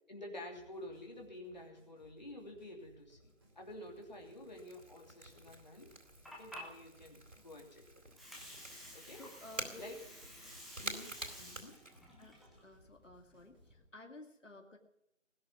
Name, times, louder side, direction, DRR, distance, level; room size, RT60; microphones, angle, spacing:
voice 1, 0.1-3.3 3.5-5.9 6.3-7.8 8.9-9.2 9.8-10.0 10.8-11.8, left 1 dB, 35° left, 0 dB, 2.9 m, -50 dB
sound 1, 0.5-13.8, equal, 20° right, 1.9 m, -67 dB
Crackle / Crack, 2.9-12.5, right 1 dB, 85° right, 4.2 m, -50 dB
Water, 5.9-13.8, equal, ahead, 0.7 m, -53 dB
voice 2, 9.2-9.9 12.2-12.4 12.6-14.8, left 2 dB, 75° left, 3 dB, 2.4 m, -54 dB
20.0 x 6.6 x 9.6 m, 0.82 s
figure-of-eight pair, 175°, 38 cm